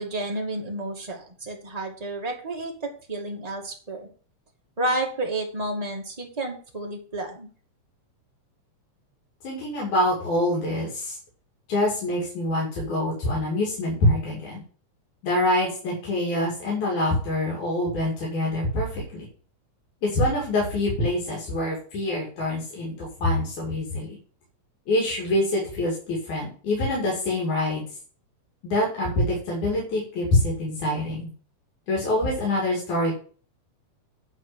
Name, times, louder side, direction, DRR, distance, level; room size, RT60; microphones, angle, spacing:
voice 1, 0.0-4.1 4.8-7.5, right 2 dB, 15° right, 0 dB, 1.6 m, -31 dB
voice 2, 9.4-11.2 11.7-14.6 15.2-19.3 20.0-24.2 24.9-27.8 28.6-31.3 31.9-33.1, left 1 dB, 80° left, -3 dB, 4.1 m, -25 dB
9.7 x 4.4 x 7.2 m, 0.42 s
omnidirectional pair, 3.4 m